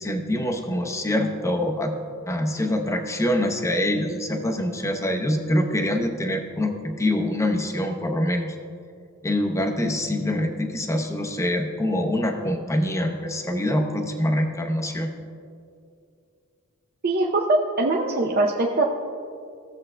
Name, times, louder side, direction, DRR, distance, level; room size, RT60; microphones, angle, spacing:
voice 1, 0.0-1.9 2.3-8.6 9.2-15.1, left 1 dB, 15° left, 3 dB, 0.7 m, -25 dB
voice 2, 17.0-18.8, right 2 dB, 45° right, -1 dB, 0.6 m, -22 dB
16.5 x 7.3 x 2.2 m, 2.4 s
head